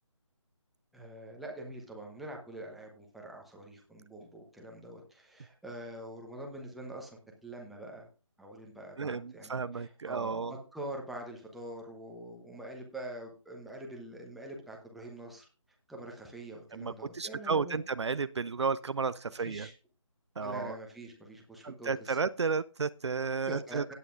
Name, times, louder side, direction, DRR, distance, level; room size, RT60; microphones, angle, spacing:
voice 1, 0.9-8.1 8.4-15.5 15.9-17.8 19.4-19.7 20.4-22.2 23.5-23.9, right 1 dB, ahead, 0 dB, 0.8 m, -45 dB
voice 2, 9.0-10.6 16.7-19.7 20.4-20.8 21.6-23.8, right 5 dB, 60° right, 16 dB, 0.4 m, -33 dB
16.5 x 8.3 x 2.5 m, 0.33 s
figure-of-eight pair, 155°, 16 cm